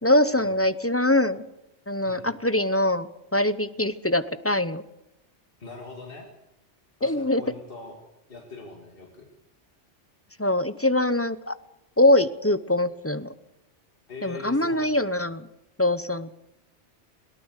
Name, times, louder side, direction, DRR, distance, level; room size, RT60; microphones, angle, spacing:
voice 1, 0.0-1.4 1.9-4.8 7.0-7.4 10.4-11.6 12.0-13.3 14.2-15.5 15.8-16.3, left 1 dB, 15° left, 13 dB, 0.7 m, -23 dB
voice 2, 5.6-6.3 7.0-8.0 8.3-9.3 14.1-15.1, left 3 dB, 50° left, 1 dB, 2.8 m, -41 dB
22.0 x 18.0 x 6.6 m, 0.87 s
omnidirectional pair, 1.2 m